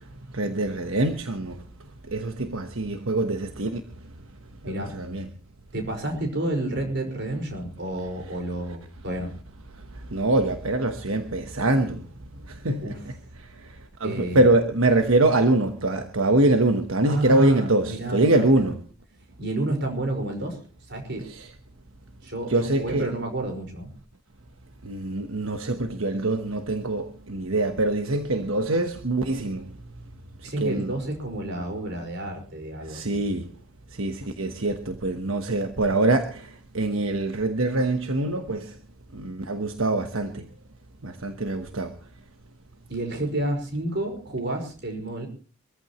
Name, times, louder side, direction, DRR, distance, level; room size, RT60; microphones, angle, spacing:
voice 1, 0.3-1.5 2.1-3.8 4.6-5.3 10.1-12.0 12.6-12.8 14.0-18.8 21.3-21.5 22.5-23.1 24.9-29.6 30.6-30.9 32.9-33.4 34.0-36.4 36.7-38.6 39.2-40.4 41.0-41.9, right 2 dB, 80° right, 1.2 m, -24 dB
voice 2, 5.7-9.3 12.8-13.0 14.0-14.5 17.0-18.7 19.4-20.6 20.9-21.3 22.2-23.9 30.4-33.2 42.9-45.3, right 1 dB, 55° right, 5.2 m, -30 dB
25.0 x 14.5 x 3.1 m
head